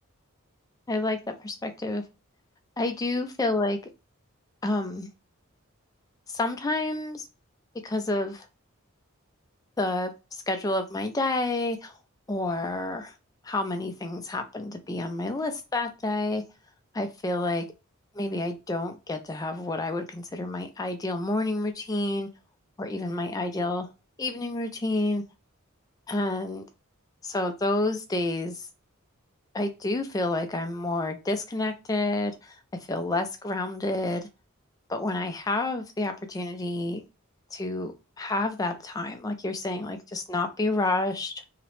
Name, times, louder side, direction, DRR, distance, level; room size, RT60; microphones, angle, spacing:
voice 1, 0.9-2.0 2.8-3.8 4.6-5.1 6.3-7.3 7.8-8.5 9.8-11.9 12.3-13.1 13.4-16.4 16.9-17.7 18.2-22.3 22.8-23.9 24.2-25.2 26.1-26.6 27.2-28.7 29.5-32.6 32.9-34.2 34.9-37.0 37.5-37.9 38.2-41.3, left 2 dB, 15° left, 7 dB, 0.3 m, -29 dB
2.8 x 2.0 x 3.0 m, 0.28 s
head